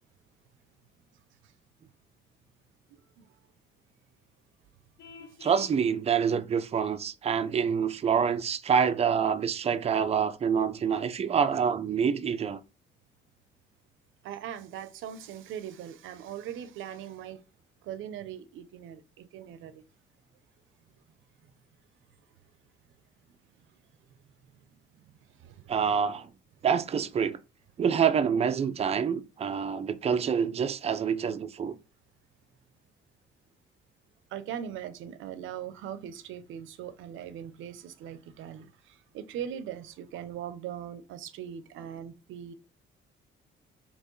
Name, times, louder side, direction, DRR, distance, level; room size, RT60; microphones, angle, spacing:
Vehicle horn car horn honking, 5.0-5.8, left 4 dB, 60° left, 0.7 m, -48 dB
voice 1, 5.4-12.6 25.7-26.3 26.6-27.4 27.8-31.8, right 7 dB, 30° right, 0.4 m, -26 dB
voice 2, 14.2-17.4 17.8-19.8 24.5-25.7 34.3-42.5, right 9 dB, 85° right, 0.6 m, -40 dB
4.4 x 2.9 x 3.1 m
cardioid pair, 90°, 20 cm